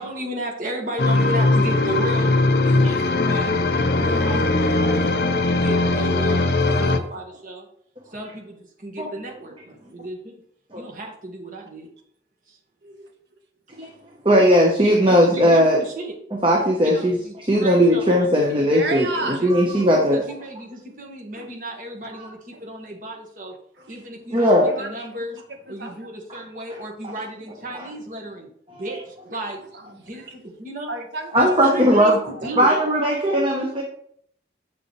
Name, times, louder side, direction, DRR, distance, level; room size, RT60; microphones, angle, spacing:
voice 1, 0.0-2.3 2.8-7.7 8.1-10.4 10.8-11.9 12.5-12.6 14.3-14.5 15.1-16.2 16.8-18.7 19.1-19.5 19.9-23.5 23.9-24.5 24.8-25.4 25.7-28.5 28.8-29.6 30.1-30.2 30.6-30.9 31.4-32.8, right 1 dB, 45° right, 0 dB, 1.9 m, -34 dB
sound 1, 1.0-7.0, left 2 dB, 60° left, 0.7 m, -20 dB
voice 2, 14.2-15.8 16.4-17.2 17.5-19.1 19.4-20.2 22.2-22.3 24.3-24.7 26.3-26.4 27.0-27.1 27.7-27.9 28.7-28.8 31.3-32.2 32.6-33.8, equal, 30° right, -1 dB, 1.1 m, -18 dB
voice 3, 18.6-19.4 21.3-21.5 22.5-22.6 23.8-23.9 24.6-25.4 25.7-25.9 29.3-30.2 30.9-32.6 32.8-33.0, right 3 dB, 75° right, 4 dB, 1.5 m, -34 dB
8.1 x 7.0 x 3.3 m, 0.65 s
head